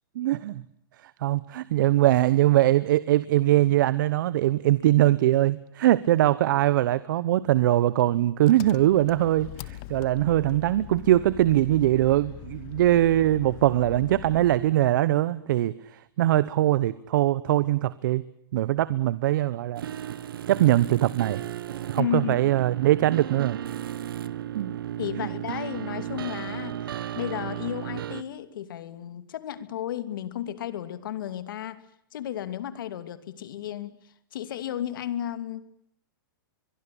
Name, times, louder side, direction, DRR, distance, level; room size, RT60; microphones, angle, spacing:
voice 1, 0.1-0.6 1.0-18.2 18.5-19.8 20.5-21.4 21.9-23.6 24.5-24.8 25.2-25.3, right 14 dB, 65° right, 17 dB, 1.0 m, -22 dB
Engine, 8.4-14.7, left 16 dB, 45° left, 1.4 m, -42 dB
sound 1, 19.8-28.2, right 11 dB, 80° right, 1.5 m, -34 dB
voice 2, 22.0-22.5 25.0-31.8 32.1-34.0 34.3-35.7, left 11 dB, 70° left, 12 dB, 2.7 m, -33 dB
23.0 x 23.0 x 8.6 m, 0.72 s
hypercardioid pair, 135°, 12 cm